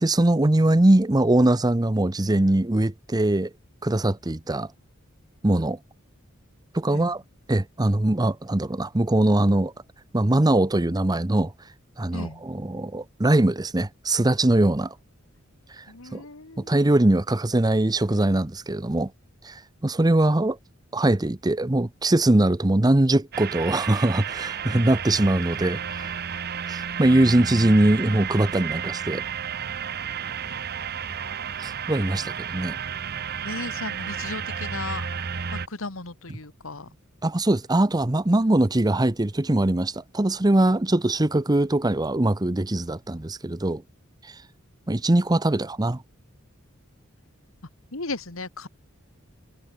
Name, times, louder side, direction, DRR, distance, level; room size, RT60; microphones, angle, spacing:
voice 1, 0.0-3.5 3.8-4.7 5.4-5.8 6.7-7.2 7.5-9.7 10.1-11.5 12.0-14.9 15.8-15.9 16.1-16.2 16.6-19.1 19.4-20.6 20.9-26.1 26.7-29.2 31.6-32.8 37.2-43.8 44.9-46.0, right 1 dB, 20° right, 0.8 m, -22 dB
voice 2, 15.9-16.8 32.1-32.2 33.4-35.1 35.5-36.9 47.9-48.7, left 3 dB, 75° left, 2.2 m, -36 dB
sound 1, 23.3-35.7, right 7 dB, 50° right, 1.0 m, -32 dB
head